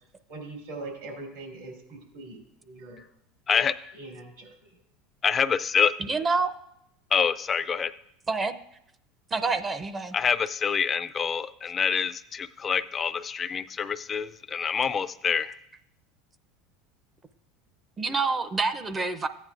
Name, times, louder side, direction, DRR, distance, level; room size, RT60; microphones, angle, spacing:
voice 1, 0.3-2.4 2.6-3.0 3.9-4.5, right 2 dB, 85° right, 1 dB, 3.2 m, -41 dB
voice 2, 3.5-3.9 5.2-5.9 7.1-7.9 10.1-15.6, left 6 dB, 30° left, 14 dB, 0.4 m, -26 dB
voice 3, 6.0-6.5 8.3-8.5 9.3-10.2 18.0-19.3, right 4 dB, 20° right, 10 dB, 0.5 m, -27 dB
14.5 x 9.0 x 2.5 m, 0.76 s
supercardioid pair, 110°, 0 cm